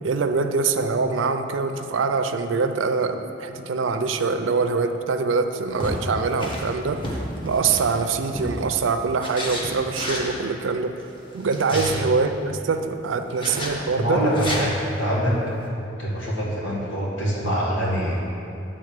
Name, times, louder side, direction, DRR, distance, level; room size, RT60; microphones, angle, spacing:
voice 1, 0.0-7.0 7.4-11.0 11.3-14.2, right 4 dB, 90° right, 8 dB, 0.5 m, -24 dB
sound 1, 5.7-8.7 9.2-10.3 11.3-12.0 13.4-13.7 14.3-14.6, equal, 25° left, 1.1 m, -31 dB
voice 2, 13.9-15.4 16.0-18.2, equal, 85° left, -5 dB, 1.9 m, -24 dB
9.5 x 3.8 x 6.6 m, 2.8 s
head